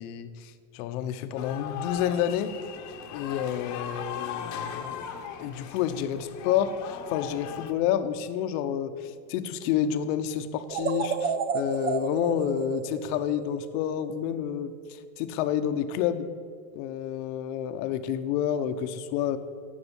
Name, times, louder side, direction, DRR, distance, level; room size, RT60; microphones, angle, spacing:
voice 1, 0.0-2.5 3.1-5.1 5.4-16.3 16.7-19.4, left 9 dB, 65° left, 10 dB, 1.1 m, -29 dB
sound 1, 1.4-7.7, left 8 dB, 35° left, 1.2 m, -38 dB
sound 2, 10.7-13.9, right 6 dB, 20° right, 0.5 m, -31 dB
17.5 x 6.8 x 8.2 m, 2.1 s
cardioid pair, 165°, 48 cm